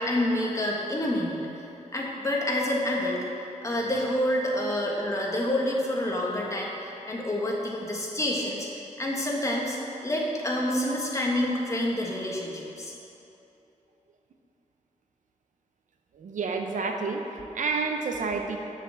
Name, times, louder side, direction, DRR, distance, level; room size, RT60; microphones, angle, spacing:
voice 1, 0.0-1.4 1.9-3.2 3.6-8.7 9.0-13.0, left 1 dB, 25° left, -3 dB, 1.7 m, -28 dB
voice 2, 16.1-18.6, right 4 dB, 85° right, 4 dB, 0.9 m, -29 dB
8.0 x 6.6 x 7.5 m, 2.8 s
wide cardioid pair, 125°, 13 cm